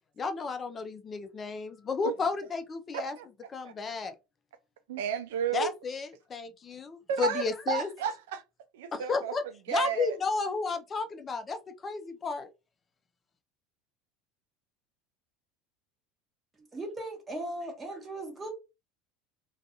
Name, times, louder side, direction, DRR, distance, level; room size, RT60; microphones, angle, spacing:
voice 1, 0.2-3.1 3.5-4.1 5.5-7.9 8.9-9.4 9.7-12.5, left 4 dB, 25° left, 0.4 m, -32 dB
voice 2, 2.9-3.3 3.6-3.7 4.9-5.7 7.1-8.4 8.7-9.3 9.7-10.2, right 7 dB, 90° right, 0.3 m, -32 dB
voice 3, 16.7-18.5, right 1 dB, 20° right, 1.0 m, -38 dB
2.4 x 2.3 x 2.7 m
supercardioid pair, 120°, 0 cm